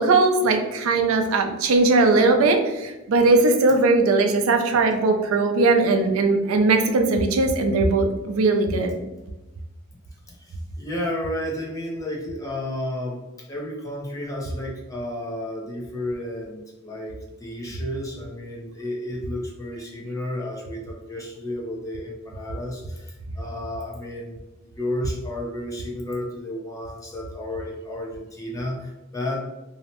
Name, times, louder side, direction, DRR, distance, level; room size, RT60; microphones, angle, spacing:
voice 1, 0.0-8.9, right 3 dB, 85° right, 5 dB, 0.4 m, -19 dB
voice 2, 10.5-13.2 13.5-24.3 24.8-29.4, left 1 dB, 15° left, -2 dB, 0.5 m, -32 dB
2.7 x 2.0 x 2.8 m, 1.0 s
head